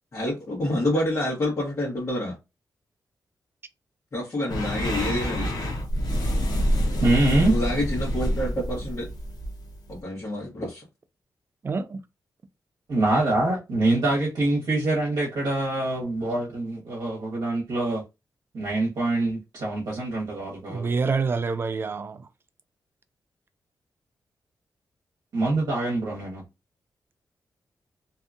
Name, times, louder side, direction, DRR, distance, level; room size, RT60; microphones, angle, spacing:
voice 1, 0.1-2.3 4.1-5.5 6.9-7.0 7.5-9.1 9.9-10.8, left 1 dB, 45° left, 1.1 m, -28 dB
sound 1, 4.5-10.0, equal, 70° left, 0.7 m, -27 dB
voice 2, 7.0-7.6 12.9-18.0 18.5-20.9 25.3-26.4, right 2 dB, 65° right, 0.9 m, -25 dB
voice 3, 11.6-12.0 20.7-22.3, right 4 dB, 35° right, 0.3 m, -27 dB
2.7 x 2.3 x 2.5 m
wide cardioid pair, 135°, 7 cm